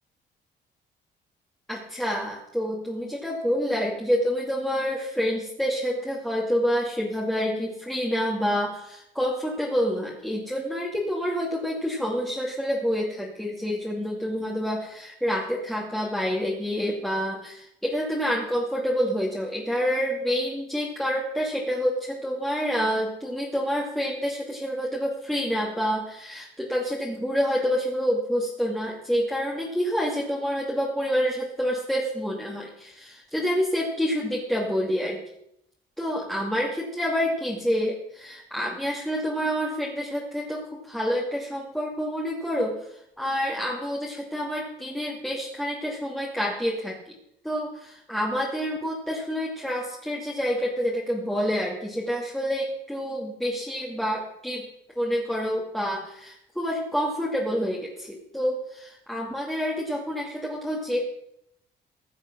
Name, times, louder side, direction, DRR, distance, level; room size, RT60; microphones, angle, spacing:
voice 1, 1.7-35.2 36.0-42.7 43.2-47.1 47.4-54.6 55.0-61.1, equal, ahead, -4 dB, 2.4 m, -28 dB
15.0 x 7.2 x 6.2 m, 0.76 s
cardioid pair, 90°, 20 cm